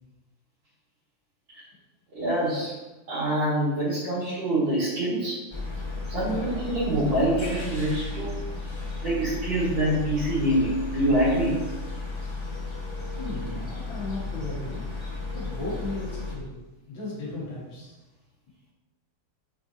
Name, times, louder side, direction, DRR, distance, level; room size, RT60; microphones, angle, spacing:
voice 1, 2.1-2.7 3.1-5.4 6.1-8.4 9.0-11.6, right 1 dB, 75° right, -12 dB, 3.1 m, -25 dB
sound 1, 5.5-16.4, left 3 dB, 35° left, 0.4 m, -34 dB
voice 2, 13.2-14.9 15.3-16.5 16.9-18.0, left 2 dB, 85° left, -5 dB, 2.4 m, -35 dB
8.8 x 3.9 x 2.8 m, 1.1 s
omnidirectional pair, 2.1 m